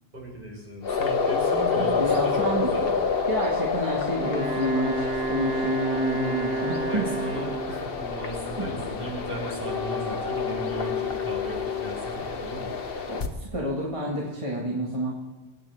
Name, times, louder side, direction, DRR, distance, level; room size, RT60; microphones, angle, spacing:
voice 1, 0.1-2.9 6.9-12.7, right 1 dB, 60° right, -4 dB, 5.2 m, -36 dB
sound 1, 0.8-13.3, left 5 dB, 65° left, 1.2 m, -28 dB
voice 2, 1.6-2.8 3.3-7.1 13.1-15.2, equal, 30° right, -4 dB, 2.0 m, -29 dB
Wind instrument woodwind instrument, 4.1-7.9, right 3 dB, 80° right, 2.4 m, -30 dB
24.5 x 9.0 x 3.5 m, 1.3 s
omnidirectional pair, 1.0 m